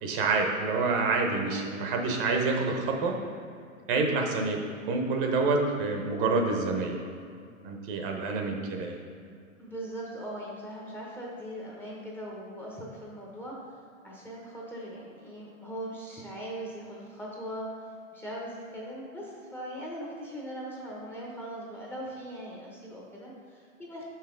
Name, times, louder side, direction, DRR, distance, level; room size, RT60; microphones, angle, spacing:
voice 1, 0.0-3.2 3.9-4.6 4.8-7.0 7.6-9.0, right 3 dB, 40° right, 2 dB, 0.9 m, -27 dB
voice 2, 9.6-13.6 14.0-17.7 18.1-24.0, right 1 dB, 5° left, -4 dB, 0.8 m, -40 dB
6.3 x 5.8 x 3.8 m, 2.4 s
hypercardioid pair, 125°, 41 cm